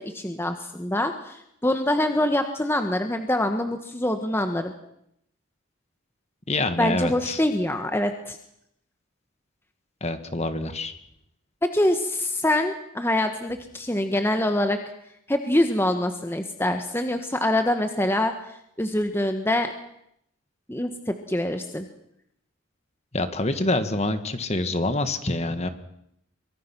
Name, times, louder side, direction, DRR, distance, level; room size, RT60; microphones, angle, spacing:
voice 1, 0.0-4.7 6.8-8.4 11.6-14.8 15.3-18.3 18.8-19.7 20.7-21.9, left 1 dB, 10° left, 6 dB, 1.4 m, -25 dB
voice 2, 6.5-7.4 10.0-10.9 23.1-25.7, left 2 dB, 30° left, 9 dB, 1.8 m, -26 dB
24.5 x 23.0 x 6.2 m, 0.75 s
head